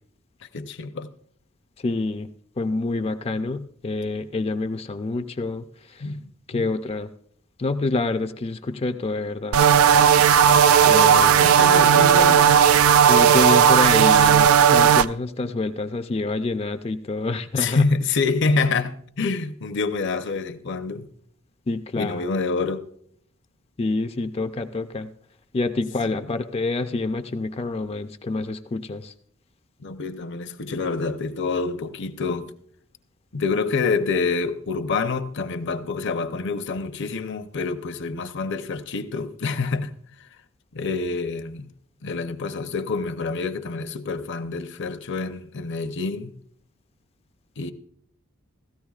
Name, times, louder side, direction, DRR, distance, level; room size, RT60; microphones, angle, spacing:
voice 1, 0.5-1.1 6.0-6.7 10.5-12.6 17.5-21.1 21.9-22.9 26.1-26.3 29.8-32.5 33.3-39.9 40.7-41.7 42.0-46.3 47.6-47.7, left 4 dB, 60° left, 0.7 m, -27 dB
voice 2, 1.8-2.3 2.6-5.7 6.5-7.1 7.6-9.6 10.8-11.4 13.1-17.8 21.7-22.2 23.8-25.1 25.5-29.1, left 3 dB, 30° left, 0.4 m, -27 dB
sound 1, 9.5-15.1, right 8 dB, 90° right, 0.4 m, -15 dB
16.5 x 13.5 x 2.4 m
head